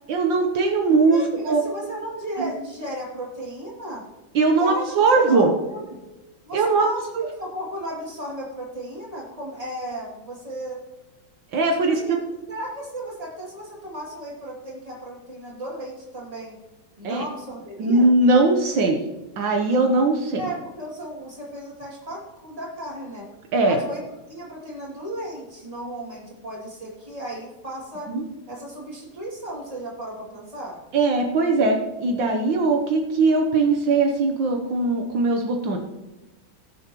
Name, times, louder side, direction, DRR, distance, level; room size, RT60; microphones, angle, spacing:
voice 1, 0.1-1.6 2.4-2.5 4.4-5.5 6.5-6.9 7.2-7.3 11.5-12.2 17.0-17.2 17.8-19.0 19.4-20.4 23.5-23.8 28.1-28.2 30.9-35.8, right 3 dB, 75° right, 2 dB, 1.7 m, -20 dB
voice 2, 1.0-4.0 4.6-4.9 5.2-6.0 6.4-7.0 7.4-10.8 11.7-12.2 12.5-16.6 17.0-18.1 20.4-23.3 23.6-24.0 24.3-28.1 28.5-30.8, right 1 dB, 20° right, -4 dB, 2.7 m, -35 dB
18.0 x 7.0 x 3.0 m, 1.0 s
omnidirectional pair, 2.1 m